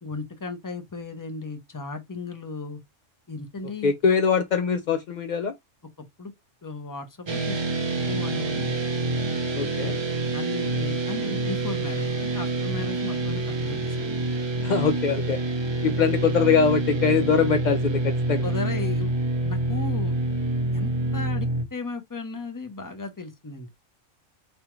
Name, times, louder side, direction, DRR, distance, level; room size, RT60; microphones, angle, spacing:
voice 1, 0.0-2.8 3.3-4.2 6.2-6.3 6.6-7.6 8.1-8.8 10.3-14.1 18.4-19.1 19.4-20.1 20.7-23.7, left 3 dB, 20° left, 0.6 m, -35 dB
voice 2, 3.8-5.5 9.5-10.0 14.6-15.4 15.8-18.4, left 5 dB, 80° left, 0.4 m, -22 dB
sound 1, 7.3-21.6, right 2 dB, 35° right, 0.4 m, -27 dB
5.2 x 2.3 x 3.0 m
omnidirectional pair, 1.3 m